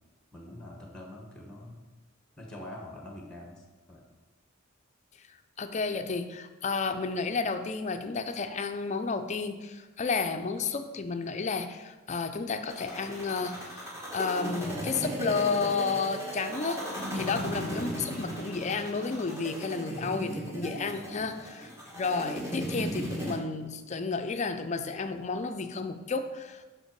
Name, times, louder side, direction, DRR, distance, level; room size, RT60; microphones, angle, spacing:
voice 1, 0.3-1.9 2.4-4.1 17.2-17.5 21.0-21.3, left 1 dB, 5° left, 0 dB, 1.1 m, -45 dB
voice 2, 5.6-21.7 22.0-26.6, left 4 dB, 35° left, 8 dB, 0.4 m, -32 dB
sound 1, 12.7-23.4, equal, 15° right, 1.2 m, -36 dB
5.8 x 5.4 x 4.6 m, 1.2 s
head